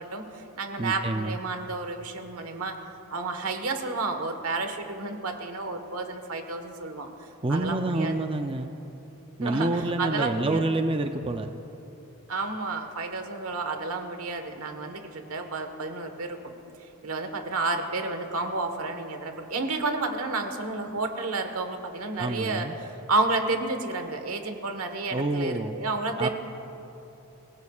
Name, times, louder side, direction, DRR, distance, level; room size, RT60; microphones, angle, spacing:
voice 1, 0.0-2.8 3.1-7.1 7.5-8.4 9.4-10.6 12.3-16.4 17.0-26.3, right 3 dB, 90° right, 6 dB, 1.4 m, -31 dB
voice 2, 0.8-1.4 7.4-8.7 9.4-11.5 22.2-22.8 25.1-25.8 26.2-26.3, right 2 dB, 25° right, 6 dB, 0.5 m, -27 dB
28.0 x 17.0 x 2.4 m, 3.0 s
head